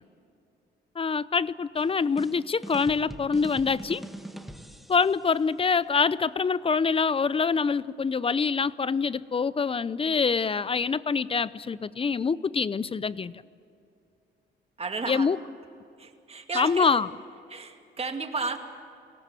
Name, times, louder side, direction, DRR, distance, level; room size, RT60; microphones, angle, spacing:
voice 1, 1.0-4.0 4.9-13.3 15.1-15.4 16.6-17.1, left 5 dB, 30° left, 19 dB, 0.6 m, -25 dB
sound 1, 1.8-5.3, right 1 dB, ahead, 1.7 m, -42 dB
voice 2, 14.8-15.3 16.0-17.0 17.5-18.6, right 4 dB, 30° right, 5 dB, 2.3 m, -33 dB
23.0 x 18.0 x 8.3 m, 2.6 s
cardioid pair, 90°, 20 cm